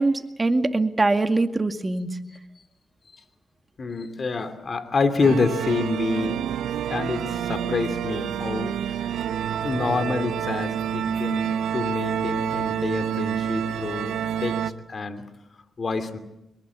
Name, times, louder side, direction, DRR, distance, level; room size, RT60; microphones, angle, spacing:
voice 1, 0.0-2.1, right 2 dB, 25° right, 7 dB, 2.1 m, -22 dB
voice 2, 3.8-6.4 6.9-9.0 9.6-14.6 14.9-15.2 15.8-16.2, left 4 dB, 45° left, 9 dB, 2.7 m, -27 dB
sound 1, 5.2-14.7, right 9 dB, 85° right, 1.0 m, -28 dB
24.0 x 22.5 x 8.4 m, 0.91 s
cardioid pair, 70°, 0 cm